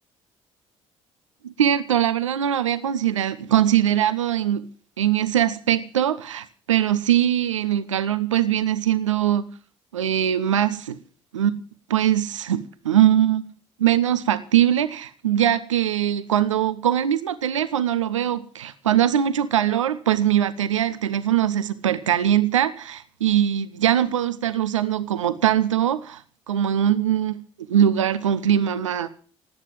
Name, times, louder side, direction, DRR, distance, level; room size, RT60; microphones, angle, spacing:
voice 1, 1.4-4.7 5.0-9.5 9.9-11.0 11.3-11.5 11.9-13.4 13.8-27.4 27.7-29.1, right 10 dB, 80° right, 0.6 m, -21 dB
17.5 x 9.1 x 7.7 m
figure-of-eight pair, 45°, 16 cm